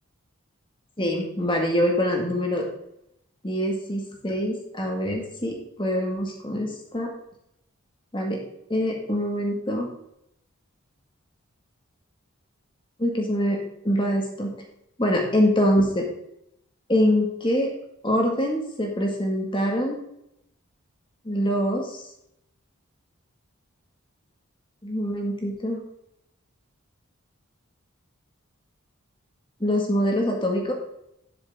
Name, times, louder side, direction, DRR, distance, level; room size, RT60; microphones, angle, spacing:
voice 1, 1.0-2.6 3.4-7.1 8.1-8.4 8.7-9.9 13.0-13.6 13.8-14.5 15.0-16.1 16.9-17.7 18.0-20.0 21.3-22.0 24.8-25.8 29.6-30.7, equal, 25° left, 1 dB, 1.8 m, -24 dB
11.5 x 7.8 x 3.6 m, 0.78 s
head